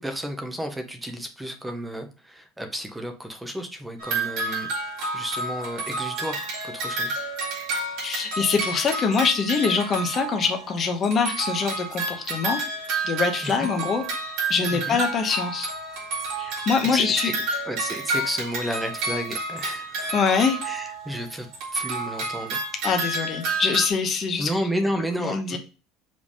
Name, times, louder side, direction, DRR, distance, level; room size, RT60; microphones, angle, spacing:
voice 1, 0.0-7.1 13.4-13.7 14.7-15.0 16.9-17.3 17.7-20.1 20.6-22.6 24.4-25.6, equal, 5° right, 5 dB, 0.7 m, -32 dB
sound 1, 4.0-10.8 11.0-21.2 21.5-23.9, right 3 dB, 55° right, 2.2 m, -30 dB
voice 2, 8.0-12.6 13.0-14.0 14.5-15.7 16.4-17.3 20.1-20.6 22.8-24.5 25.2-25.6, left 5 dB, 25° left, 4 dB, 0.9 m, -24 dB
5.2 x 3.4 x 5.4 m, 0.34 s
cardioid pair, 180°, 0 cm